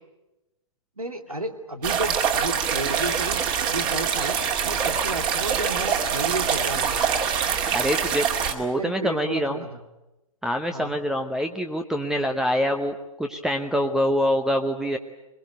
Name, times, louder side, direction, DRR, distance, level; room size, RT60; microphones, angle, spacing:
voice 1, 1.0-4.4 4.6-7.2 8.8-9.7 10.7-11.0, right 2 dB, 85° right, 5 dB, 2.5 m, -32 dB
sound 1, 1.8-8.5, right 7 dB, 25° right, 2.3 m, -24 dB
voice 2, 7.7-9.6 10.4-15.0, equal, 5° right, 5 dB, 0.8 m, -25 dB
22.5 x 21.5 x 9.2 m, 1.0 s
figure-of-eight pair, 120°, 18 cm